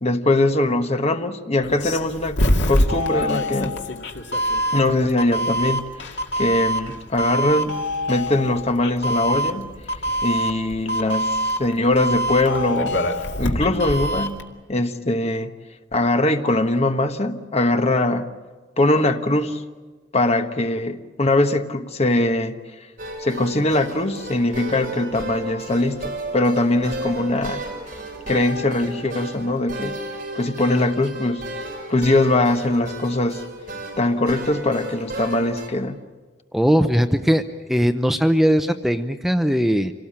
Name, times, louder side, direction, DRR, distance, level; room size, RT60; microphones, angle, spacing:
voice 1, 0.0-2.4 2.7-3.8 4.7-7.8 8.1-9.7 10.2-13.0 13.4-15.5 15.9-18.3 18.8-19.6 20.1-22.6 23.2-27.6 28.3-30.0 30.3-31.5 31.9-33.5 34.0-36.0, left 2 dB, 35° left, 8 dB, 1.2 m, -21 dB
Doorbell, 1.6-14.4, equal, 85° left, 2.2 m, -24 dB
sound 1, 23.0-35.7, right 1 dB, 50° right, 4.9 m, -33 dB
voice 2, 36.5-39.9, equal, ahead, 8 dB, 0.7 m, -19 dB
27.0 x 18.0 x 8.7 m, 1.4 s
head